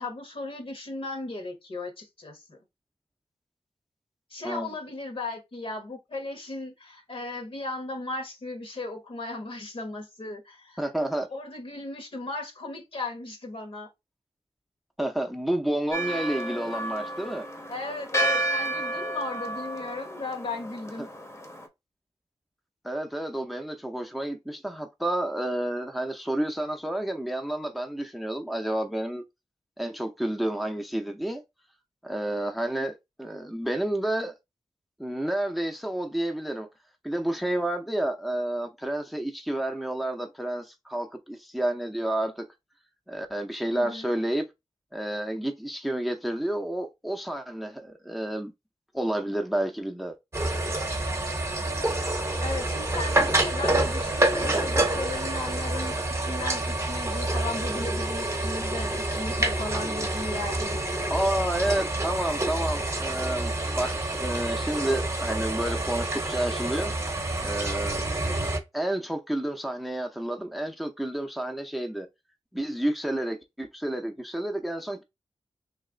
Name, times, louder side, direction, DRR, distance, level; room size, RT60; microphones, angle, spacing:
voice 1, 0.0-2.6 4.3-10.8 11.3-13.9 17.7-21.1 43.7-44.1 52.4-61.5, left 2 dB, 60° left, 1.2 m, -36 dB
voice 2, 10.8-11.3 15.0-17.5 21.0-21.1 22.8-29.2 29.8-31.4 32.0-34.3 35.0-36.7 37.0-42.4 43.1-44.4 44.9-48.5 48.9-50.2 50.4-50.6 61.1-66.9 67.4-68.1 68.7-72.1 72.5-75.0, right 1 dB, ahead, 0.6 m, -30 dB
Church bell, 15.9-21.7, right 1 dB, 30° left, 0.9 m, -31 dB
sound 1, 50.3-68.6, right 2 dB, 30° right, 0.9 m, -28 dB
3.3 x 2.9 x 3.8 m
wide cardioid pair, 65°, 10 cm